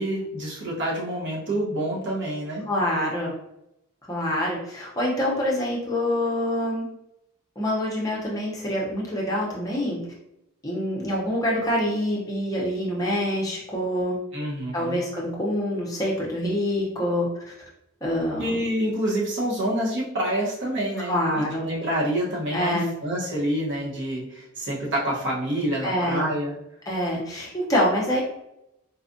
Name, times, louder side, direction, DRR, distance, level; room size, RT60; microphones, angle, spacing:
voice 1, 0.0-2.7 14.3-15.0 18.4-26.5, right 1 dB, 55° right, -5 dB, 1.0 m, -27 dB
voice 2, 2.7-3.3 4.1-6.9 7.6-10.0 10.6-14.2 14.7-17.5 18.0-18.6 21.1-21.7 22.5-22.9 25.8-26.3 26.9-28.2, equal, 15° left, -4 dB, 0.7 m, -26 dB
4.1 x 2.3 x 2.6 m, 0.84 s
head